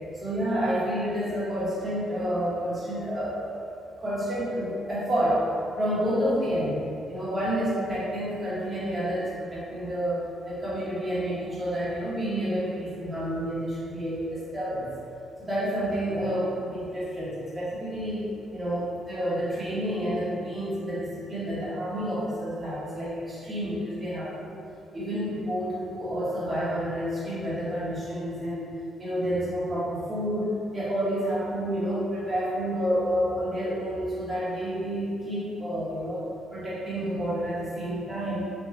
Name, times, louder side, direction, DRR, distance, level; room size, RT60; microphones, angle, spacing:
voice 1, 0.1-3.4 4.0-5.4 5.7-6.8 7.1-14.9 15.4-24.5 24.9-28.7 29.0-36.2 36.5-38.5, equal, 25° right, -10 dB, 1.5 m, -29 dB
3.5 x 2.7 x 2.9 m, 2.5 s
cardioid pair, 90°, 0 cm